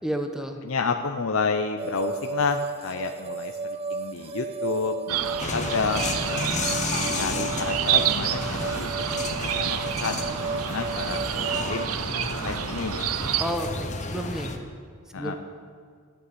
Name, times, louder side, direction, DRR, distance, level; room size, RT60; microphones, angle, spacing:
voice 1, 0.0-0.6 13.4-14.6 15.1-15.3, right 1 dB, 5° right, 5 dB, 0.9 m, -31 dB
voice 2, 0.6-6.5 7.2-11.9 12.4-13.2 15.1-15.3, left 4 dB, 70° left, 4 dB, 0.7 m, -30 dB
sound 1, 1.8-11.9, right 4 dB, 30° right, 0.4 m, -34 dB
sound 2, 5.1-13.5, right 10 dB, 85° right, 0.5 m, -29 dB
sound 3, 5.4-14.6, left 3 dB, 35° left, 1.1 m, -32 dB
12.5 x 8.7 x 8.0 m, 2.1 s
head